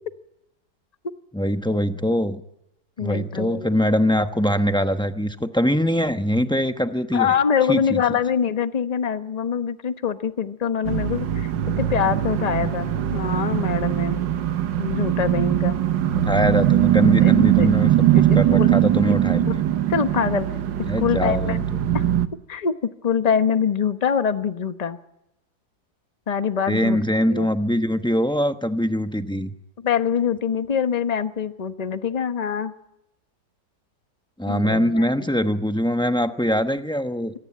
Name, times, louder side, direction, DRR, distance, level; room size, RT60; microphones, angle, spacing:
voice 1, 1.3-2.4 3.0-7.3 7.7-7.8 16.3-19.6 20.9-21.6 21.9-22.0 26.7-29.5 34.4-37.3, equal, 5° left, 8 dB, 0.6 m, -22 dB
voice 2, 3.0-3.7 7.1-14.3 14.8-15.8 17.2-17.7 18.1-18.7 19.1-19.2 19.5-19.6 19.9-20.5 21.0-21.7 21.9-22.0 22.5-25.0 26.3-27.5 29.8-32.7 34.5-35.1, left 7 dB, 30° left, 10 dB, 0.8 m, -24 dB
sound 1, 10.9-22.3, right 12 dB, 85° right, 1.7 m, -21 dB
25.0 x 18.5 x 8.5 m, 0.87 s
omnidirectional pair, 1.9 m